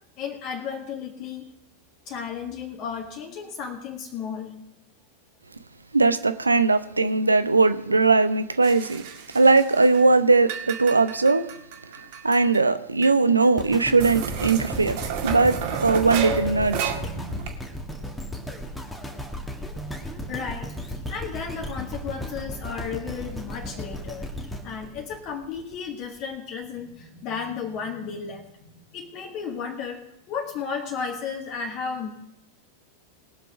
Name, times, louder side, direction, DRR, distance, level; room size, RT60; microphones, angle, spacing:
voice 1, 0.2-1.5 2.1-4.6 20.0-28.5 28.9-32.1, left 6 dB, 40° left, 1.9 m, -34 dB
voice 2, 5.9-9.0 9.3-11.5 12.2-16.9, right 3 dB, 80° right, 0.8 m, -20 dB
sound 1, 8.6-10.1 10.3-12.6 13.0-13.1 13.4-13.5 14.0-17.5, right 6 dB, 50° right, 2.0 m, -32 dB
sound 2, 13.6-25.8 26.3-26.4, left 1 dB, 5° left, 1.8 m, -35 dB
21.0 x 7.0 x 5.0 m
figure-of-eight pair, 90°, 0 cm